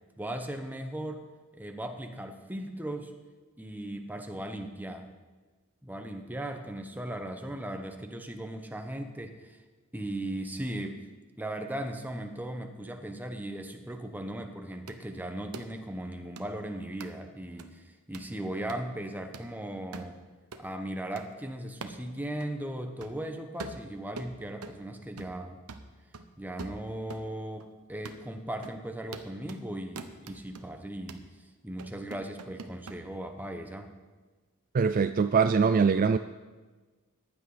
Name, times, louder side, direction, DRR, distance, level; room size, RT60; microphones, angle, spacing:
voice 1, 0.2-1.2 1.5-3.1 3.6-5.1 5.8-9.6 9.9-11.0 11.4-20.2 20.6-25.6 26.4-31.2 31.6-33.9, right 1 dB, 10° right, 5 dB, 1.1 m, -37 dB
sound 1, 14.9-15.0 15.5-15.7 16.4-16.5 17.0-17.1 17.6-17.7 18.1-18.3 18.7-18.8 19.3-19.5 19.9-20.1 20.5-20.7 21.2-21.3 21.8-22.0 22.4-22.5 23.0-23.2 23.6-24.8 25.2-25.4 25.7-27.3 27.6-27.7 28.0-28.2 28.6-28.8 29.1-29.6 30.0-30.6 31.1-31.3 31.8-33.0, right 3 dB, 90° right, 1.0 m, -44 dB
voice 2, 34.7-36.2, right 5 dB, 40° right, 11 dB, 0.3 m, -23 dB
15.0 x 10.5 x 5.0 m, 1.3 s
head